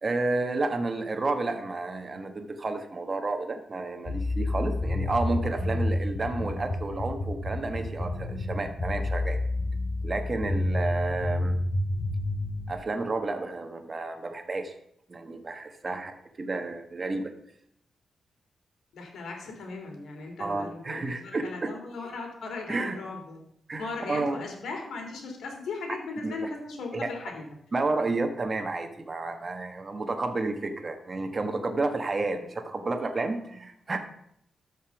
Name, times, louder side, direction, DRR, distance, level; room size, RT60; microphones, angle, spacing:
voice 1, 0.0-9.4 10.0-11.6 12.7-14.7 15.1-17.3 20.4-21.7 22.7-22.9 23.7-24.4 26.2-26.3 26.9-27.1 27.7-34.0, right 3 dB, 30° right, 6 dB, 1.4 m, -31 dB
sound 1, 4.1-12.7, left 2 dB, 55° left, 2.5 m, -29 dB
voice 2, 18.9-23.4 23.8-27.4, left 3 dB, 85° left, 2 dB, 3.0 m, -38 dB
13.0 x 5.5 x 6.0 m, 0.74 s
cardioid pair, 115°, 0 cm